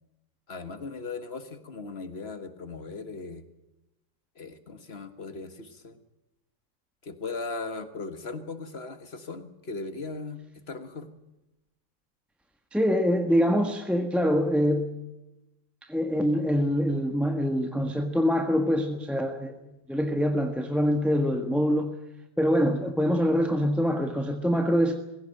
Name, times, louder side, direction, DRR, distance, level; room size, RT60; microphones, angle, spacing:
voice 1, 0.5-3.4 4.4-6.0 7.0-10.4 10.7-11.1, left 3 dB, 35° left, 9 dB, 1.7 m, -38 dB
voice 2, 12.7-14.9 15.9-19.5 19.9-21.9 22.4-24.9, equal, ahead, 5 dB, 1.1 m, -24 dB
20.5 x 16.5 x 9.0 m, 0.95 s
omnidirectional pair, 2.1 m